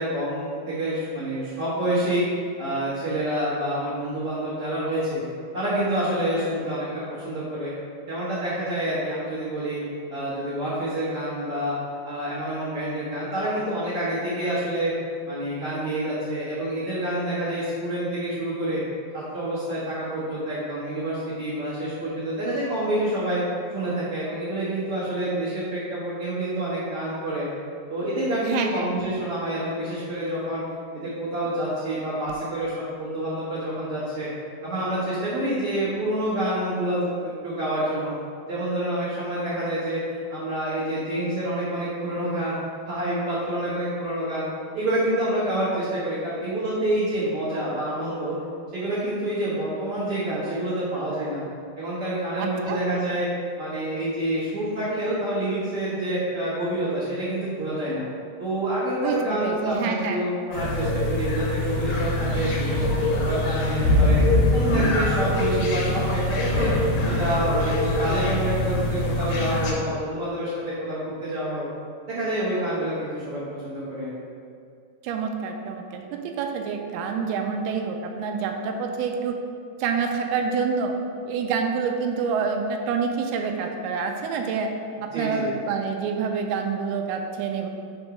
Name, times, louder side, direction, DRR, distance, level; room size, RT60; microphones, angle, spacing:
voice 1, 0.0-2.2 2.6-5.2 5.5-7.7 8.1-9.8 10.1-11.7 12.0-14.9 15.3-18.8 19.1-23.4 23.7-27.4 27.9-30.6 30.9-34.3 34.6-38.1 38.5-40.0 40.3-42.5 42.9-44.4 44.7-48.3 48.7-51.4 51.7-53.3 53.6-58.0 58.4-64.2 64.5-66.7 67.0-71.6 72.1-74.1 85.1-85.5, right 1 dB, 60° right, -12 dB, 1.5 m, -27 dB
voice 2, 28.5-28.9 52.4-52.8 59.0-60.2 75.0-79.4 79.8-81.0 81.3-84.7 85.0-87.7, right 5 dB, 80° right, 3 dB, 2.3 m, -27 dB
sound 1, 60.5-69.7, left 1 dB, 75° left, 1.7 m, -23 dB
5.2 x 4.4 x 5.9 m, 2.3 s
omnidirectional pair, 4.7 m